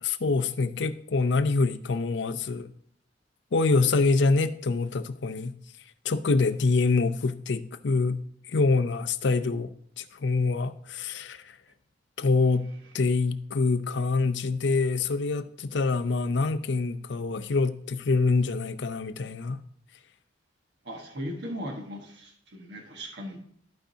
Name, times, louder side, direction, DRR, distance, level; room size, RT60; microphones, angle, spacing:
voice 1, 0.0-2.7 3.5-5.6 6.0-8.2 8.5-11.5 12.2-12.7 12.9-19.6, left 3 dB, 65° left, 0.5 m, -25 dB
voice 2, 20.8-23.4, equal, 60° right, 1.4 m, -38 dB
14.0 x 5.0 x 2.7 m
head